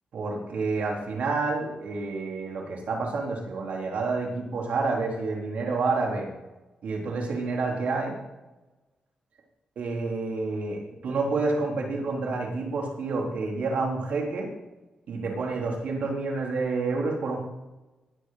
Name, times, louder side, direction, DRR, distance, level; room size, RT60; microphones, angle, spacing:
voice 1, 0.1-6.3 6.8-8.2 9.8-14.5 15.1-17.4, right 3 dB, 75° right, 0 dB, 3.9 m, -29 dB
19.0 x 6.6 x 5.9 m, 1.1 s
cardioid pair, 70°, 2 cm